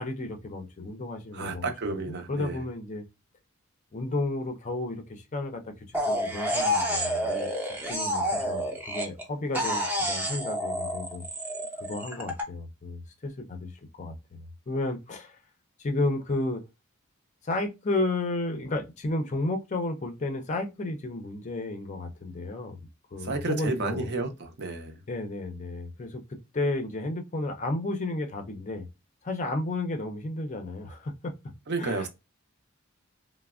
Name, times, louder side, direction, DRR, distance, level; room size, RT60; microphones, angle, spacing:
voice 1, 0.0-1.7 2.1-3.0 3.9-7.5 7.9-11.2 11.8-13.7 14.0-15.4 15.8-16.6 17.4-22.8 23.1-24.1 25.1-28.9 29.2-31.3 31.8-32.1, left 2 dB, 35° left, 0.5 m, -32 dB
voice 2, 1.3-2.6 23.2-25.0 31.7-32.1, right 3 dB, 50° right, 0.6 m, -31 dB
sound 1, 5.9-9.2 9.5-12.4, equal, 10° right, 0.5 m, -29 dB
3.2 x 2.0 x 2.3 m
head